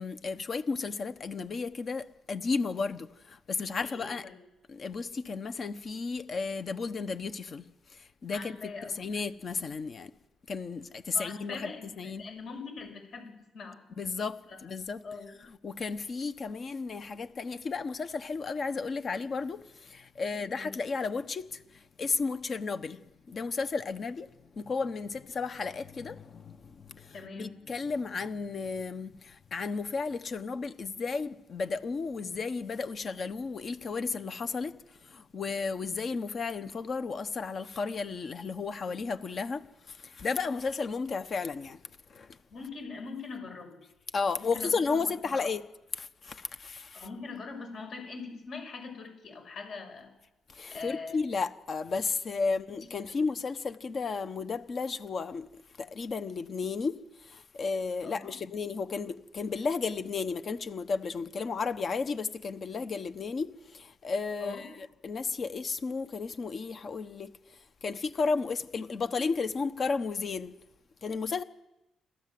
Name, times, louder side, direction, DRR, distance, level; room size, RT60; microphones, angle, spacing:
voice 1, 0.0-4.2 4.7-7.7 8.2-8.6 9.0-10.1 10.5-11.7 12.0-12.3 14.0-15.0 15.6-21.6 22.0-23.0 23.3-24.3 24.5-34.7 35.1-39.6 39.9-41.8 42.1-42.3 44.1-45.6 45.9-47.0 50.5-67.3 67.8-70.5 71.0-71.4, left 4 dB, 45° left, 1.1 m, -33 dB
voice 2, 3.7-4.4 8.3-9.2 11.1-13.8 14.5-14.6 15.0-15.4 20.3-21.0 27.1-27.5 42.5-43.8 44.4-45.5 46.9-50.1 50.7-51.2 52.8-53.4 58.0-58.4 64.4-64.7, left 4 dB, 60° left, 6.2 m, -43 dB
27.5 x 13.5 x 7.8 m
cardioid pair, 90°, 0 cm